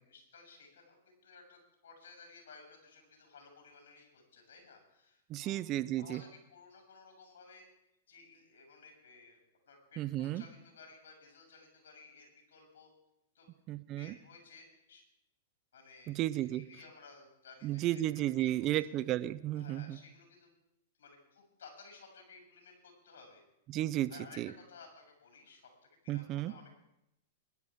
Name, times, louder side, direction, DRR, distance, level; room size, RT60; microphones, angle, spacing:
voice 1, 0.1-5.6 6.0-7.7 8.1-9.4 9.7-12.9 13.3-13.5 14.0-15.0 15.7-16.2 16.4-18.9 19.5-20.5 21.0-23.4 24.1-24.4 24.7-25.7 26.0-26.7, left 4 dB, 80° left, 2 dB, 6.9 m, -56 dB
voice 2, 5.3-6.2 10.0-10.4 13.7-14.1 16.1-16.6 17.6-20.0 23.7-24.1 24.4-24.5 26.1-26.5, right 14 dB, 35° right, 15 dB, 0.6 m, -33 dB
21.0 x 12.0 x 3.7 m, 0.83 s
hypercardioid pair, 130°, 0 cm